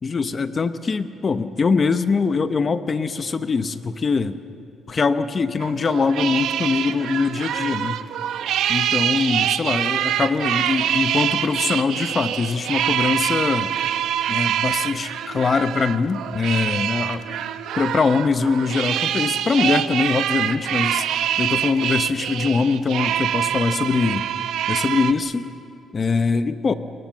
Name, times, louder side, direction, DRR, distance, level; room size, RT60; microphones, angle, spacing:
voice 1, 0.0-4.4 4.9-8.0 8.7-13.7 14.3-17.2 17.8-21.1 21.4-24.3 24.7-25.5 25.9-26.7, left 4 dB, 25° left, 11 dB, 0.8 m, -22 dB
sound 1, 5.6-25.1, right 10 dB, 75° right, 0.9 m, -25 dB
28.0 x 21.5 x 7.3 m, 2.5 s
cardioid pair, 180°, 0 cm